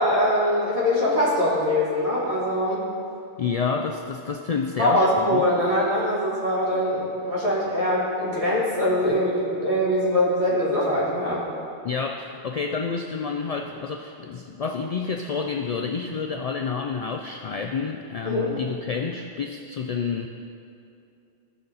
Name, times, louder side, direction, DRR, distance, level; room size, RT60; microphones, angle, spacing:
voice 1, 0.0-2.9 4.8-11.4 18.2-18.5, left 1 dB, 30° right, -8 dB, 2.7 m, -23 dB
voice 2, 3.4-5.4 11.8-20.3, left 5 dB, 70° left, 3 dB, 0.3 m, -29 dB
15.5 x 5.5 x 3.9 m, 2.6 s
omnidirectional pair, 1.2 m